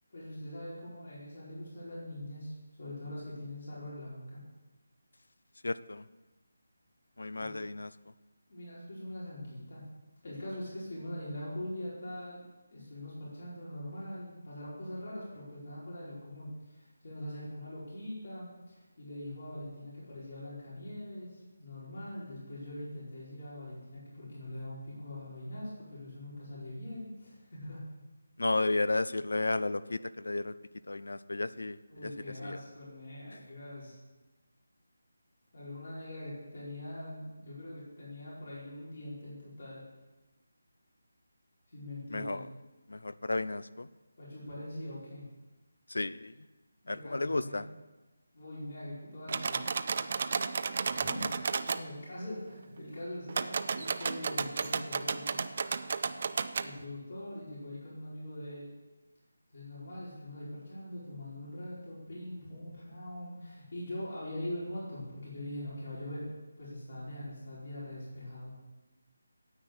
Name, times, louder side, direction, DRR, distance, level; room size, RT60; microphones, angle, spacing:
voice 1, 0.1-4.4 7.4-7.5 8.5-9.8 10.2-12.4 12.7-27.9 31.9-33.9 35.5-39.8 41.7-42.4 44.2-45.3 46.8-47.6 48.3-49.6 50.8-55.6 56.6-58.7 59.5-66.3 66.6-68.6, left 1 dB, 50° left, -8 dB, 5.1 m, -42 dB
voice 2, 5.6-6.0 7.2-7.9 28.4-30.5 30.9-32.1 32.4-32.6 42.1-42.4 42.9-43.9 45.9-46.3 46.9-47.6, left 2 dB, 90° left, 16 dB, 0.6 m, -33 dB
sound 1, 49.3-51.8 53.3-56.7, right 5 dB, 35° right, 0.4 m, -33 dB
9.7 x 8.8 x 8.0 m, 1.2 s
figure-of-eight pair, 175°, 0 cm